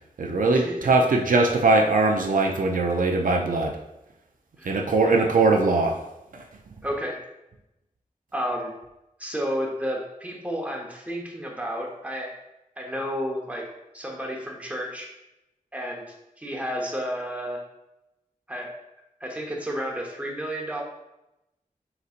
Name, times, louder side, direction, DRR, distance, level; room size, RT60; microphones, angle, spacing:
voice 1, 0.2-3.8 4.6-6.0 6.3-6.4, right 3 dB, 70° right, 1 dB, 0.5 m, -21 dB
voice 2, 6.8-7.2 8.3-8.7 9.2-12.3 12.8-13.7 13.9-15.1 15.7-16.0 16.4-17.6 18.5-18.7 19.2-20.8, equal, 10° right, -1 dB, 0.8 m, -31 dB
4.0 x 4.0 x 2.5 m, 0.91 s
wide cardioid pair, 65°, 14 cm